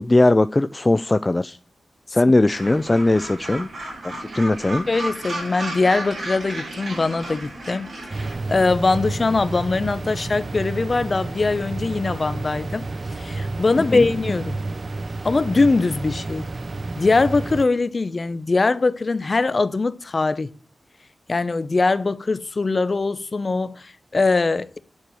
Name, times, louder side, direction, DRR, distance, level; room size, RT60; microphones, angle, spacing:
voice 1, 0.0-1.6 2.1-3.7 4.0-4.9 13.8-14.1, left 2 dB, 25° left, 0.4 m, -19 dB
Gull seagull, 2.5-8.3, right 1 dB, 65° right, 6.1 m, -33 dB
voice 2, 4.9-12.8 13.1-14.6 15.2-16.5 17.0-20.5 21.3-24.8, left 3 dB, 40° left, 0.7 m, -22 dB
sound 1, 8.1-17.7, right 3 dB, 40° right, 0.6 m, -30 dB
9.8 x 4.5 x 7.6 m
wide cardioid pair, 100°, 0 cm